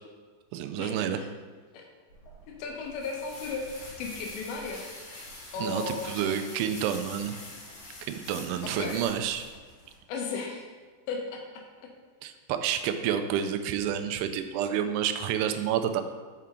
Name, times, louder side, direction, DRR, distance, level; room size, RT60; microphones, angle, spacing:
voice 1, 0.5-1.2 5.6-7.4 8.1-9.4 12.2-16.0, right 9 dB, 85° right, 8 dB, 2.9 m, -29 dB
sound 1, 2.1-10.0, left 2 dB, 60° left, 2.9 m, -45 dB
voice 2, 2.5-3.7 4.0-4.8 5.5-6.3 8.6-9.0 10.1-10.7 11.1-11.4, left 4 dB, 80° left, 1 dB, 3.0 m, -35 dB
7.1 x 5.7 x 3.7 m, 1.5 s
omnidirectional pair, 5.3 m